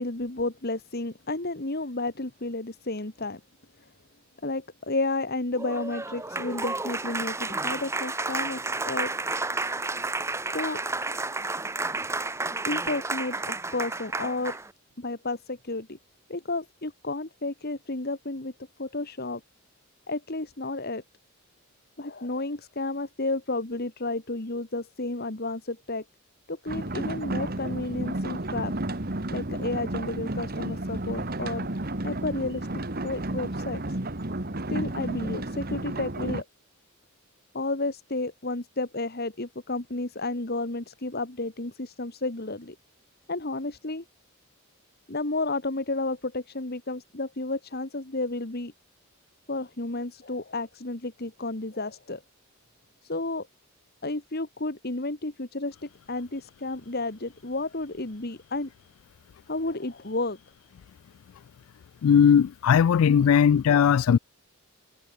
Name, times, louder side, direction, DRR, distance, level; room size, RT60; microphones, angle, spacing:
voice 1, 0.0-3.4 3.8-3.9 4.4-9.1 10.5-10.8 12.7-14.6 15.0-16.0 16.3-18.5 18.8-19.4 20.1-21.0 22.0-26.0 26.5-28.7 29.3-31.7 32.0-32.7 33.0-33.8 34.7-36.5 37.5-42.8 43.3-44.0 45.1-48.7 49.5-52.2 53.0-53.5 54.0-58.7 59.5-60.4, left 2 dB, 45° left, 1.8 m, -32 dB
Applause, 5.5-14.7, right 3 dB, 15° right, 1.0 m, -31 dB
sound 1, 26.7-36.4, right 1 dB, 45° right, 1.9 m, -32 dB
voice 2, 62.0-64.2, left 7 dB, 75° left, 0.3 m, -19 dB
head